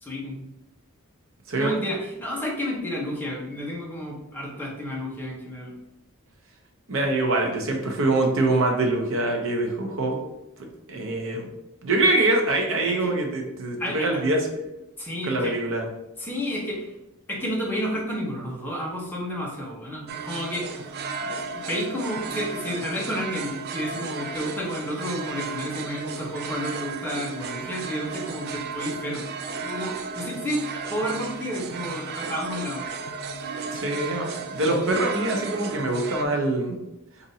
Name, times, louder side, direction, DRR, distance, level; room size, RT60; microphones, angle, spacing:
voice 1, 0.0-0.5 1.6-5.7 12.9-13.1 13.8-14.1 15.0-15.5 16.2-17.0 17.3-20.7 21.2-29.3 29.6-30.6 30.9-32.8, equal, 10° left, -4 dB, 0.9 m, -31 dB
voice 2, 1.5-1.8 6.9-10.2 10.6-11.5 11.8-14.5 15.2-15.9 33.7-36.8, right 2 dB, 65° right, 2 dB, 0.8 m, -24 dB
sound 1, 20.1-36.2, right 5 dB, 45° right, 0.3 m, -34 dB
4.9 x 2.6 x 2.8 m, 0.90 s
head